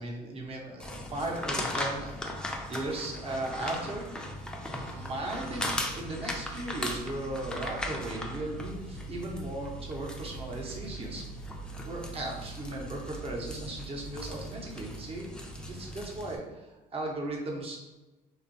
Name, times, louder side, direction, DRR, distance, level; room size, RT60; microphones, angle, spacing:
voice 1, 0.0-2.1 2.4-4.3 4.7-11.2 11.8-15.3 15.6-17.8, right 2 dB, 35° right, -1 dB, 0.7 m, -37 dB
sound 1, 0.8-16.4, equal, 5° left, 0.3 m, -38 dB
2.6 x 2.3 x 2.6 m, 1.1 s
cardioid pair, 110°, 17 cm